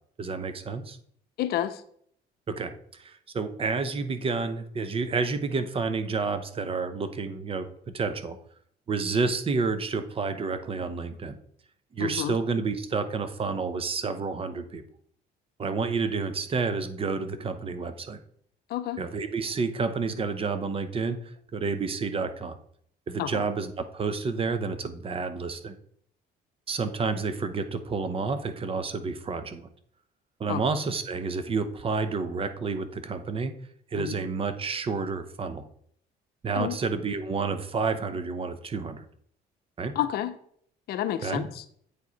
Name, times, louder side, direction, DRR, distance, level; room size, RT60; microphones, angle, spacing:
voice 1, 0.2-1.0 2.5-7.7 7.9-8.4 8.9-11.4 11.9-14.8 15.6-18.2 19.0-21.2 21.5-22.6 23.1-25.7 26.7-29.7 30.4-33.5 33.9-35.6 36.4-39.0 39.8-39.9 41.2-41.4, right 4 dB, 35° right, 10 dB, 0.8 m, -30 dB
voice 2, 1.4-1.8 12.0-12.3 18.7-19.0 23.2-23.3 30.5-30.6 34.1-34.2 36.5-36.8 40.0-40.3 40.9-41.5, left 12 dB, 70° left, 11 dB, 0.7 m, -29 dB
8.4 x 4.8 x 4.0 m, 0.64 s
cardioid pair, 110°, 17 cm